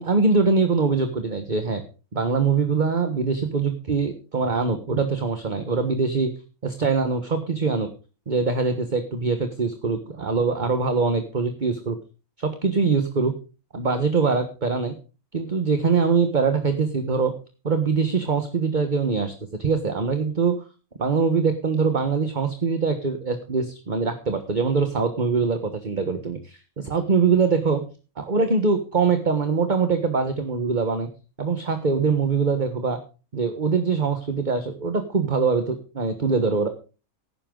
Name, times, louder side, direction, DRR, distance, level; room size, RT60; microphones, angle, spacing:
voice 1, 0.0-1.8 2.1-6.3 6.6-7.9 8.3-11.9 12.4-13.3 13.7-14.9 15.3-17.3 17.6-19.3 19.6-20.5 21.0-27.8 28.2-31.1 31.4-33.0 33.3-36.7, right 4 dB, 35° right, 7 dB, 1.4 m, -23 dB
17.0 x 10.0 x 3.8 m, 0.34 s
omnidirectional pair, 1.5 m